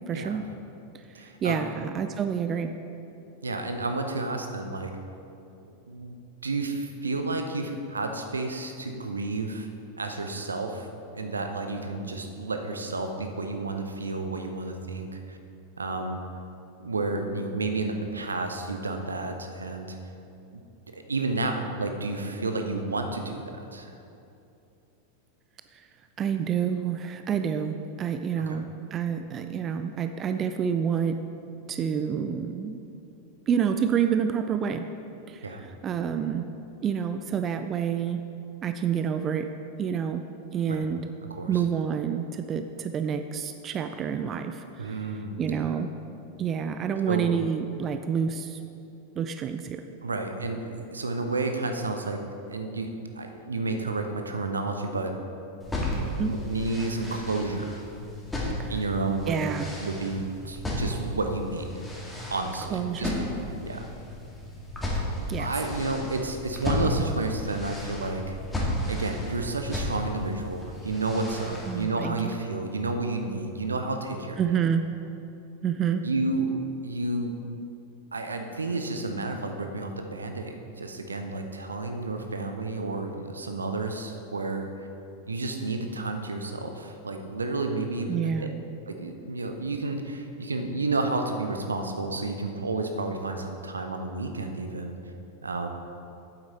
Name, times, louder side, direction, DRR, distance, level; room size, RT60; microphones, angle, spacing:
voice 1, 0.1-0.5 0.9-2.7 25.7-25.9 26.2-31.2 31.7-32.8 33.5-34.9 35.3-36.5 36.8-38.2 38.6-39.5 39.8-40.2 40.5-41.0 41.5-45.9 46.4-48.6 49.2-49.8 56.2-56.3 58.6-58.7 59.3-59.7 62.7-63.2 65.3-65.5 71.7-72.4 74.4-74.8 75.6-76.0 88.1-88.6, right 7 dB, 25° right, 8 dB, 0.4 m, -28 dB
voice 2, 1.1-1.6 3.4-4.9 5.6-6.1 6.4-9.7 10.0-15.4 15.8-16.2 16.8-20.0 20.5-20.6 20.9-23.9 28.4-28.6 35.4-35.6 40.7-40.8 41.3-41.5 44.8-45.6 47.1-47.2 50.0-52.2 52.5-52.9 53.1-55.2 55.6-57.9 58.7-59.5 59.8-61.8 62.3-63.1 63.7-63.9 65.4-68.4 68.9-74.4 76.0-76.5 76.8-77.3 78.1-84.9 85.3-88.5 88.9-95.0 95.4-95.7, right 3 dB, 75° right, 5 dB, 0.7 m, -31 dB
sound 1, 55.6-71.8, left 1 dB, 10° left, 1.8 m, -33 dB
8.8 x 7.9 x 4.2 m, 2.8 s
figure-of-eight pair, 90°, 0 cm